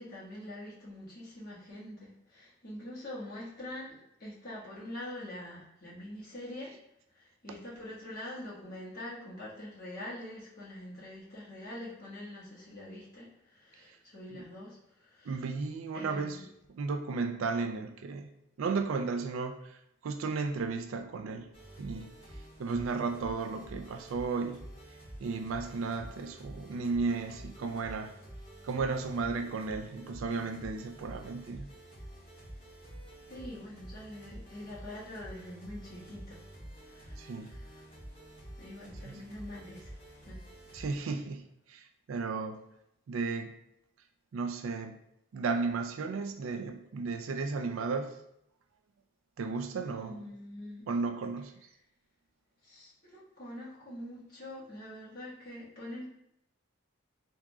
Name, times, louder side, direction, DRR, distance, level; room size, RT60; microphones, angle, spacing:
voice 1, 0.0-3.9 4.2-6.7 7.1-14.8 15.1-15.4 15.9-16.5 33.3-36.4 36.8-37.8 38.6-40.0 40.2-40.4 40.7-41.0 49.8-50.8 52.6-56.0, left 1 dB, 50° left, -8 dB, 1.4 m, -44 dB
voice 2, 15.3-16.4 16.7-18.3 18.6-21.5 21.8-22.1 22.6-24.6 25.2-28.1 28.6-31.7 37.2-37.5 39.0-39.1 40.7-42.6 43.1-43.5 44.3-45.0 45.3-48.1 49.4-50.2 50.9-51.5, right 4 dB, 80° right, 7 dB, 0.4 m, -34 dB
sound 1, 21.5-41.0, right 1 dB, 25° left, 1.4 m, -49 dB
3.5 x 2.9 x 2.3 m, 0.78 s
head